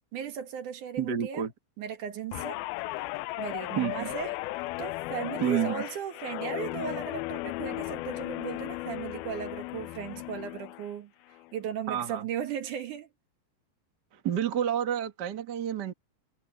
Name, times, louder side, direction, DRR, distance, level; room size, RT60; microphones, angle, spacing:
voice 1, 0.1-1.4 1.8-2.6 3.4-4.4 4.8-11.1 11.5-13.1, right 8 dB, 60° right, 2.8 m, -36 dB
voice 2, 1.0-1.5 3.8-4.1 5.4-5.8 11.9-12.3 14.1-15.9, right 10 dB, 45° right, 1.4 m, -29 dB
Guitar, 2.3-10.9 11.3-11.6, left 20 dB, 85° left, 2.4 m, -36 dB
omnidirectional pair, 4.3 m